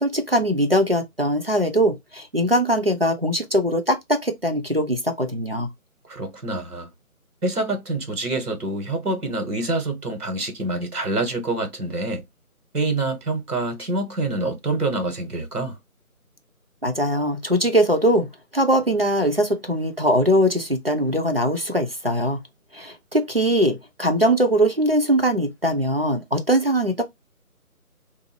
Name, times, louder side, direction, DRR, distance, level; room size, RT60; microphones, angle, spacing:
voice 1, 0.0-5.7 16.8-22.4 22.7-27.0, equal, 45° right, 0.5 m, -21 dB
voice 2, 6.1-6.9 7.4-12.2 12.7-15.8, right 2 dB, 85° right, 1.3 m, -26 dB
2.5 x 2.3 x 2.7 m
figure-of-eight pair, 160°, 44 cm